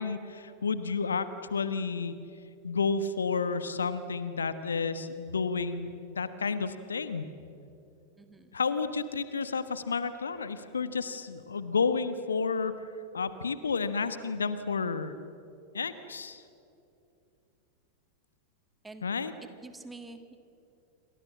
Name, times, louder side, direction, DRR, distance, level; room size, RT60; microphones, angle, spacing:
voice 1, 0.0-2.1 2.6-7.3 8.5-12.7 13.1-15.1 15.7-16.4 19.0-19.3, left 5 dB, 70° left, 12 dB, 1.2 m, -31 dB
voice 2, 8.2-8.6 18.8-19.1 19.6-20.4, right 2 dB, 10° right, 8 dB, 1.8 m, -47 dB
28.0 x 25.0 x 7.4 m, 2.7 s
figure-of-eight pair, 90°, 0 cm